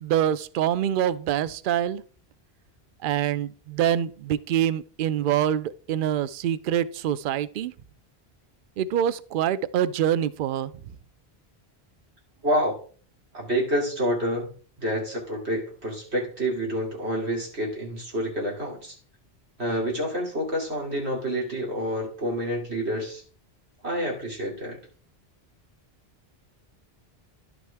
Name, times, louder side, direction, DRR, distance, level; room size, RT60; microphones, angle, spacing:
voice 1, 0.0-2.0 3.0-7.7 8.8-10.7, right 10 dB, 60° right, 0.6 m, -25 dB
voice 2, 12.4-12.8 13.3-14.5 14.8-19.0 19.6-23.2 23.8-24.8, equal, 90° right, 2.9 m, -28 dB
11.0 x 6.0 x 3.4 m
omnidirectional pair, 1.1 m